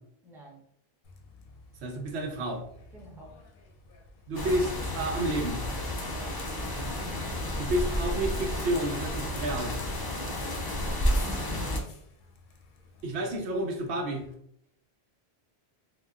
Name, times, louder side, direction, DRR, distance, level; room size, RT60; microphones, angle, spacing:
voice 1, 0.2-0.7 2.9-3.5 6.0-6.4 10.0-10.4, right 2 dB, 5° right, -4 dB, 0.6 m, -50 dB
Bus, 1.0-14.3, left 2 dB, 65° left, 0.7 m, -51 dB
voice 2, 1.8-2.6 4.3-5.6 7.6-9.8 13.0-14.3, right 1 dB, 85° right, 2 dB, 0.9 m, -30 dB
sound 1, 4.3-11.8, left 1 dB, 40° left, 0.3 m, -31 dB
3.8 x 2.1 x 2.3 m, 0.71 s
omnidirectional pair, 1.1 m